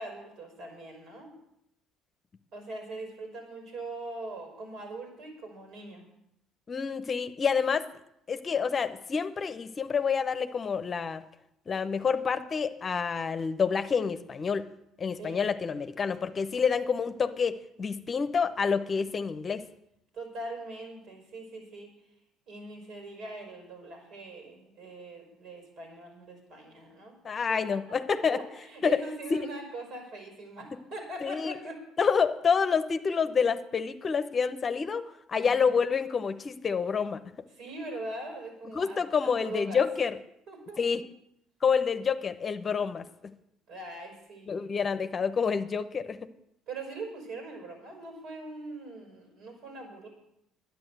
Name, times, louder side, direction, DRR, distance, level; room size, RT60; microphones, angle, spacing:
voice 1, 0.0-1.4 2.5-6.1 15.2-15.5 20.1-21.9 22.5-27.2 27.5-31.9 35.3-35.7 37.5-39.8 40.5-41.0 43.7-44.5 46.7-50.1, right 2 dB, 65° right, 3 dB, 5.0 m, -42 dB
voice 2, 6.7-7.9 8.3-11.2 11.7-14.7 15.0-19.6 27.2-28.4 28.8-29.0 29.3-29.5 31.2-31.6 32.0-37.2 38.7-40.2 40.8-41.0 41.6-43.0 44.5-46.3, left 6 dB, 40° left, 11 dB, 0.9 m, -28 dB
10.5 x 9.6 x 8.0 m, 0.79 s
supercardioid pair, 70°, 0 cm